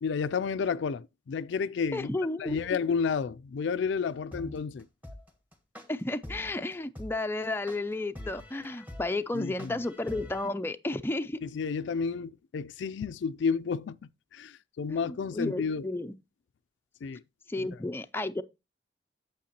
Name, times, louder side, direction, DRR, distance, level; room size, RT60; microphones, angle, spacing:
voice 1, 0.0-2.1 2.4-4.9 9.3-9.8 11.4-14.0 14.3-15.9 17.0-17.2 17.6-17.7, left 5 dB, 75° left, 0.4 m, -31 dB
voice 2, 1.9-2.6 5.9-11.4 14.9-16.1 17.5-18.4, left 2 dB, 10° left, 0.4 m, -32 dB
sound 1, 4.3-10.5, left 1 dB, 10° right, 1.3 m, -44 dB
8.5 x 7.6 x 2.8 m
head